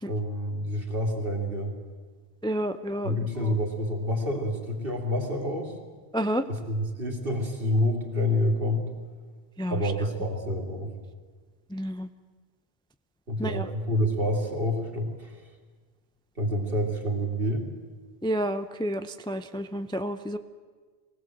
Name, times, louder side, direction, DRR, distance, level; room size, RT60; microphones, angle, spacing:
voice 1, 0.0-1.7 3.0-5.7 6.5-8.8 9.7-10.9 13.3-15.4 16.4-17.7, left 1 dB, 60° right, 1 dB, 3.0 m, -28 dB
voice 2, 2.4-3.5 6.1-6.5 9.6-9.9 11.7-12.1 13.4-13.7 18.2-20.4, equal, 5° left, 9 dB, 0.5 m, -30 dB
23.0 x 17.5 x 7.7 m, 1.5 s
omnidirectional pair, 1.0 m